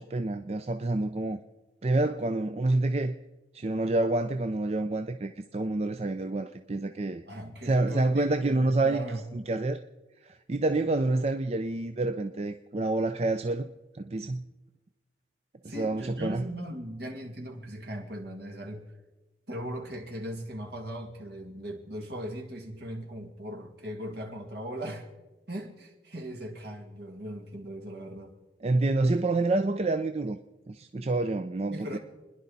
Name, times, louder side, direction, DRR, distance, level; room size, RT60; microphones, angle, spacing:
voice 1, 0.0-1.4 1.8-3.1 3.5-7.2 7.6-9.0 9.3-9.8 10.2-13.7 13.9-14.4 15.7-16.4 28.6-30.4 30.7-32.0, right 2 dB, 35° right, 0.5 m, -28 dB
voice 2, 7.3-9.3 15.6-18.9 19.5-25.1 25.5-28.3 31.7-32.0, equal, 65° right, 2.4 m, -39 dB
29.5 x 10.5 x 4.1 m
head